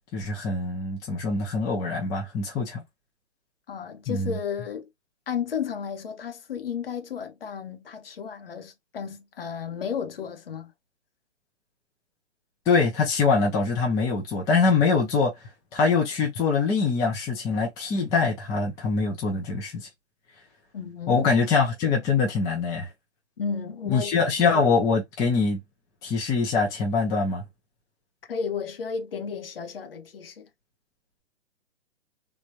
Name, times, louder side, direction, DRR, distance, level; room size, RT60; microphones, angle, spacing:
voice 1, 0.1-2.8 4.1-4.4 12.7-15.3 15.7-19.9 21.1-22.9 23.9-25.6 26.0-27.4, left 4 dB, 10° left, 0.6 m, -24 dB
voice 2, 3.7-4.9 5.3-10.7 20.7-21.3 23.4-24.2 28.3-30.5, left 6 dB, 50° left, 0.9 m, -33 dB
3.4 x 2.3 x 2.7 m
figure-of-eight pair, 125°, 36 cm